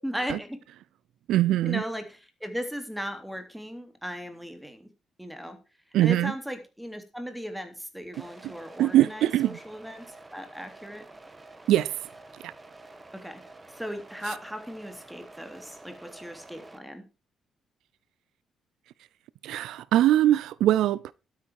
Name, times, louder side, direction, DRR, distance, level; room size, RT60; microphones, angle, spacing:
voice 1, 0.0-0.6 1.5-4.9 5.2-5.6 6.0-11.1 13.1-13.4 13.7-17.1, equal, ahead, 3.1 m, -37 dB
voice 2, 1.3-1.8 5.9-6.3 8.4-8.5 8.8-9.6 11.7-11.9 12.4-12.5 19.4-21.1, right 13 dB, 85° right, 0.5 m, -22 dB
sound 1, 8.1-16.8, right 2 dB, 20° right, 1.7 m, -49 dB
12.5 x 9.7 x 4.7 m
cardioid pair, 90°, 0 cm